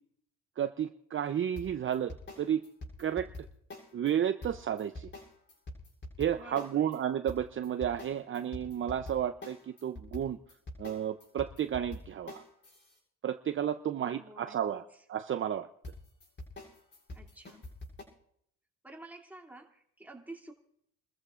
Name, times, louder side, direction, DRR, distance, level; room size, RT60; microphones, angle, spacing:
voice 1, 0.6-2.6 3.0-3.5 3.9-5.1 6.2-10.4 10.8-12.4 13.2-15.7, right 9 dB, 40° right, 10 dB, 0.6 m, -32 dB
sound 1, 1.6-4.1 4.4-7.0 7.3-13.0 15.8-18.0, left 1 dB, 35° left, 7.5 m, -45 dB
voice 2, 6.3-7.0 14.0-14.8 17.1-17.6 18.8-20.5, right 2 dB, 5° right, 0 dB, 2.7 m, -50 dB
29.5 x 14.0 x 2.5 m, 0.71 s
cardioid pair, 85°, 33 cm